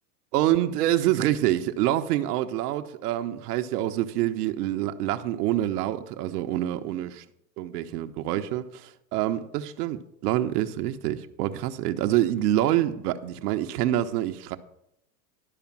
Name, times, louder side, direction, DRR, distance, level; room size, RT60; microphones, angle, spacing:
voice 1, 0.3-7.2 7.6-14.6, right 13 dB, 70° right, 0.8 m, -26 dB
12.0 x 5.0 x 7.2 m
supercardioid pair, 120°, 49 cm